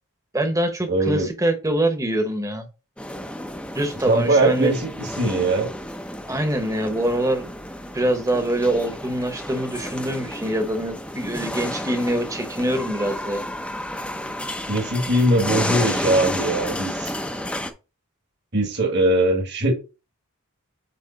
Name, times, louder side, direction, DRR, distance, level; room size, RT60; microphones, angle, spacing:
voice 1, 0.3-2.7 3.7-4.7 6.3-7.5 7.9-13.4, right 1 dB, 15° right, 1.0 m, -24 dB
voice 2, 0.9-1.3 4.1-5.7 14.7-17.1 18.5-19.7, right 1 dB, 50° right, 1.6 m, -21 dB
sound 1, 3.0-17.7, left 1 dB, 5° left, 0.6 m, -31 dB
8.5 x 3.1 x 4.0 m
head